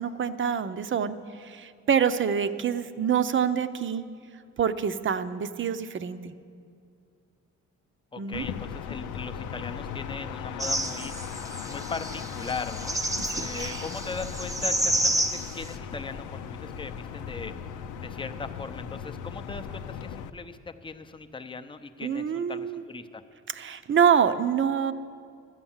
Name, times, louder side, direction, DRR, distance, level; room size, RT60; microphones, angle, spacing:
voice 1, 0.0-4.0 4.6-6.3 8.2-8.5 13.2-13.9 22.0-22.8 23.5-24.9, right 7 dB, 40° right, 12 dB, 0.6 m, -26 dB
voice 2, 8.1-11.1 11.7-13.0 13.4-15.3 15.5-17.5 18.0-23.2, left 4 dB, 15° left, 8 dB, 0.6 m, -38 dB
sound 1, 8.3-20.3, left 7 dB, 80° left, 0.6 m, -37 dB
sound 2, 10.6-15.7, right 1 dB, 10° right, 0.8 m, -30 dB
12.5 x 8.9 x 7.2 m, 2.3 s
cardioid pair, 90°, 30 cm